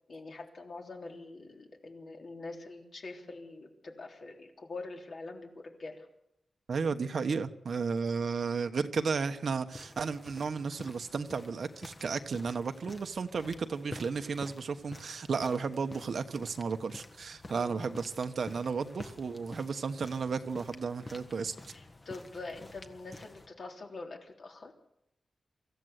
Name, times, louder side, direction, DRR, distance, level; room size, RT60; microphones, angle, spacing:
voice 1, 0.1-6.1 17.5-17.9 21.7-24.7, left 3 dB, 55° left, 1 dB, 3.6 m, -44 dB
voice 2, 6.7-21.5, right 5 dB, 60° right, 8 dB, 1.2 m, -33 dB
sound 1, 9.7-23.5, left 2 dB, 30° left, 1.5 m, -50 dB
24.5 x 14.5 x 8.2 m, 0.81 s
wide cardioid pair, 140°, 0 cm